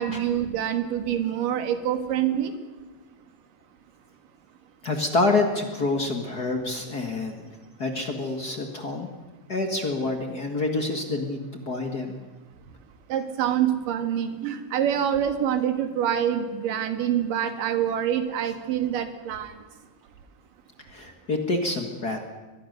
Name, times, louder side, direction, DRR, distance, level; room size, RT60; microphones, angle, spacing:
voice 1, 0.0-2.5 13.1-19.5, right 9 dB, 90° right, 8 dB, 3.2 m, -26 dB
voice 2, 4.8-7.5 7.8-9.1 9.5-12.1 20.9-22.2, left 2 dB, 40° left, 4 dB, 1.7 m, -27 dB
23.5 x 20.0 x 6.7 m, 1.2 s
omnidirectional pair, 3.7 m